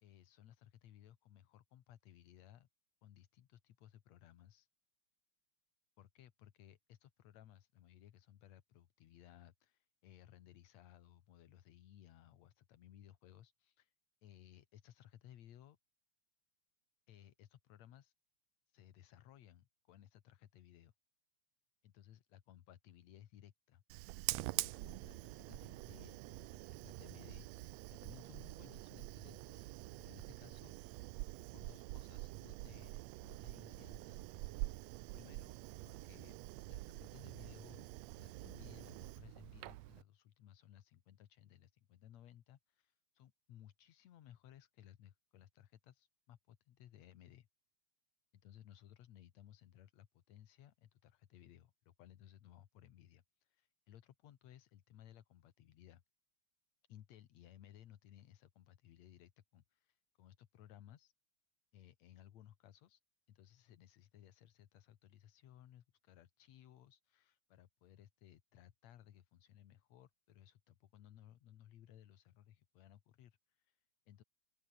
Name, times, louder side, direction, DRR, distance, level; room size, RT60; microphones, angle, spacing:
voice 1, 0.0-2.7 3.0-4.7 6.0-13.9 14.2-15.8 17.1-18.1 18.7-20.9 21.8-23.8 24.5-29.7 30.0-30.8 31.5-34.4 35.1-35.6 35.9-36.4 36.7-47.5 48.4-56.0 56.9-61.1 61.7-63.0 63.3-74.2, left 11 dB, 65° left, 2.4 m, -61 dB
Fire, 23.9-40.0, right 20 dB, 85° right, 1.5 m, -46 dB
open air
omnidirectional pair, 3.6 m